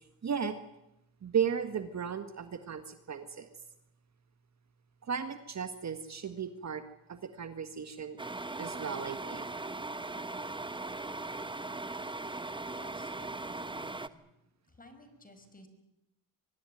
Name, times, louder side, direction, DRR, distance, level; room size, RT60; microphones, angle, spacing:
voice 1, 0.2-0.6 1.2-3.5 5.0-6.8 7.1-8.2 8.6-9.5, right 7 dB, 40° right, 9 dB, 1.7 m, -35 dB
sound 1, 8.2-14.1, right 2 dB, 10° right, 1.1 m, -39 dB
voice 2, 12.7-14.2 14.7-15.7, left 1 dB, 20° left, 9 dB, 5.6 m, -56 dB
24.5 x 18.5 x 9.2 m, 0.86 s
supercardioid pair, 85°, 43 cm